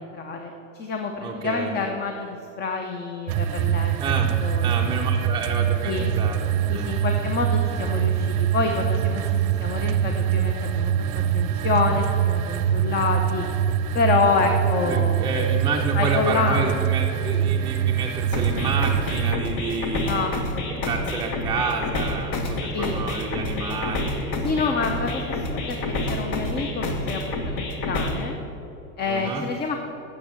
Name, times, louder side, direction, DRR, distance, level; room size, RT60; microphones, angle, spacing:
voice 1, 0.0-4.7 5.8-6.1 6.7-10.9 11.3-13.5 13.9-15.2 16.0-16.7 19.9-20.7 22.7-23.0 24.4-25.8 26.1-27.2 27.6-28.4 29.0-29.8, left 4 dB, 25° left, 4 dB, 0.8 m, -27 dB
voice 2, 1.2-1.7 4.0-4.3 4.6-6.4 6.7-6.9 14.9-24.8 29.1-29.5, right 4 dB, 10° right, -1 dB, 0.7 m, -30 dB
sound 1, 3.3-19.3, right 9 dB, 65° right, 0.6 m, -24 dB
sound 2, 18.3-28.3, left 2 dB, 40° left, 1.4 m, -28 dB
8.4 x 7.0 x 8.1 m, 2.9 s
supercardioid pair, 125°, 43 cm